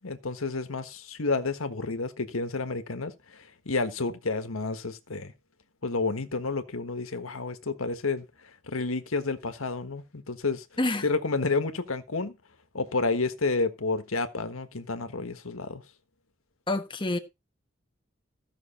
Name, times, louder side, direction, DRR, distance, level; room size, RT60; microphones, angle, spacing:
voice 1, 0.0-5.3 5.8-8.2 8.7-10.6 11.0-12.3 12.7-15.8, left 3 dB, 90° left, 1.4 m, -30 dB
voice 2, 16.7-17.2, left 2 dB, 25° left, 1.3 m, -27 dB
15.0 x 6.2 x 4.3 m
head